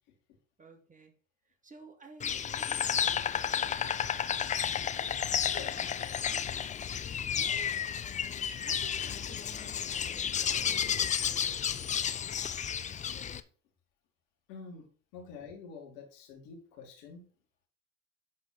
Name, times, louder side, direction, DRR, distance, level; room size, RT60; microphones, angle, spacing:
voice 1, 0.6-1.1 1.4-7.8 8.5-12.4, right 3 dB, 20° right, 5 dB, 2.2 m, -56 dB
Insect, 2.2-13.4, left 8 dB, 20° left, 0.5 m, -32 dB
voice 2, 14.5-14.9 15.1-17.2, left 5 dB, 60° left, 2 dB, 2.7 m, -47 dB
10.5 x 4.2 x 5.4 m, 0.39 s
hypercardioid pair, 70°, 38 cm